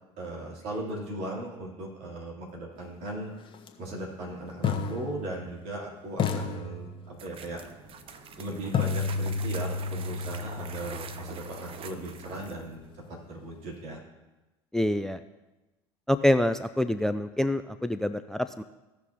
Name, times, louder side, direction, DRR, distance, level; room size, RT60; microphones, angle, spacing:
voice 1, 0.2-3.3 3.8-7.6 8.4-14.0, right 1 dB, 60° right, -3 dB, 3.2 m, -38 dB
sound 1, 3.5-3.7 4.6-5.8 6.2-7.4 8.7-12.7, left 5 dB, 40° left, 1.2 m, -32 dB
sound 2, 7.1-12.7, right 6 dB, 40° right, 0.8 m, -45 dB
voice 2, 14.7-15.2 16.1-18.6, left 1 dB, 5° left, 13 dB, 0.3 m, -26 dB
16.0 x 6.1 x 2.9 m, 1.1 s
hypercardioid pair, 70°, 14 cm